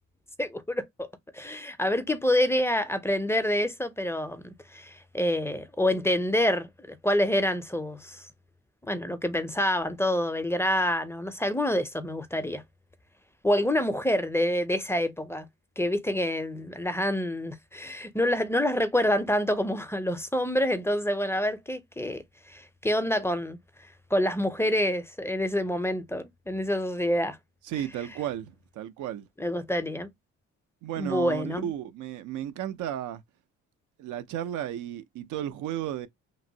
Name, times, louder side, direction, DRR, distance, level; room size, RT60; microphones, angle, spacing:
voice 1, 0.4-1.1 1.3-8.3 8.9-12.6 13.4-15.5 15.8-22.2 22.5-23.6 24.1-27.4 29.4-30.1 31.0-31.7, left 1 dB, 10° left, 0.4 m, -27 dB
voice 2, 27.6-29.3 30.8-33.2 34.0-36.1, right 11 dB, 80° right, 0.5 m, -34 dB
3.0 x 2.5 x 2.6 m
cardioid pair, 90°, 30 cm